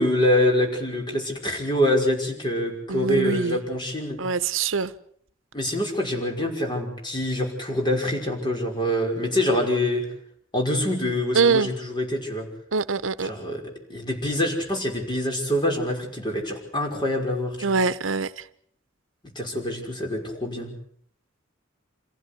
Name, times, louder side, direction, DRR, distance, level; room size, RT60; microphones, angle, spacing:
voice 1, 0.0-4.2 5.5-10.1 10.5-12.5 13.2-13.6 13.9-17.8 19.4-20.7, left 1 dB, 25° left, 5.7 m, -25 dB
voice 2, 2.9-3.6 4.2-4.9 11.3-11.7 12.7-13.3 17.6-18.3, right 5 dB, 85° right, 0.9 m, -23 dB
27.0 x 16.0 x 8.4 m
head